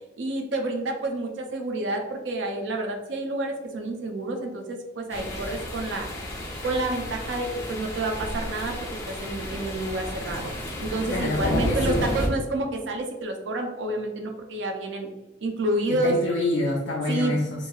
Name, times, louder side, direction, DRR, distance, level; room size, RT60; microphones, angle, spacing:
voice 1, 0.2-6.1 6.6-8.8 9.1-10.5 10.8-15.1 15.4-16.2 17.1-17.4, right 2 dB, 75° right, 3 dB, 0.4 m, -29 dB
sound 1, 5.1-12.3, left 1 dB, 15° left, 0.5 m, -32 dB
voice 2, 11.1-12.1 15.9-17.7, left 2 dB, 70° left, -2 dB, 0.4 m, -27 dB
2.9 x 2.7 x 2.3 m, 1.1 s
head